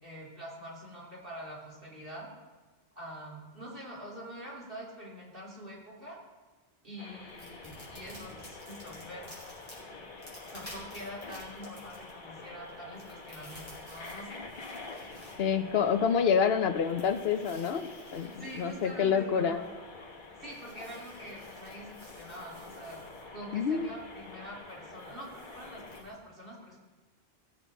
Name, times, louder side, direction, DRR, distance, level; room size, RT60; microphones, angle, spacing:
voice 1, 0.0-2.3 2.9-6.2 6.8-9.3 10.4-14.4 18.4-19.7 20.4-26.8, equal, 55° right, -5 dB, 3.0 m, -45 dB
sound 1, 7.0-26.0, left 3 dB, 50° left, 1.2 m, -47 dB
sound 2, 7.3-26.1, equal, 15° left, 4.3 m, -55 dB
voice 2, 15.4-19.6 23.5-23.9, left 7 dB, 65° left, 8 dB, 1.0 m, -27 dB
17.5 x 8.1 x 4.0 m, 1.2 s
omnidirectional pair, 1.1 m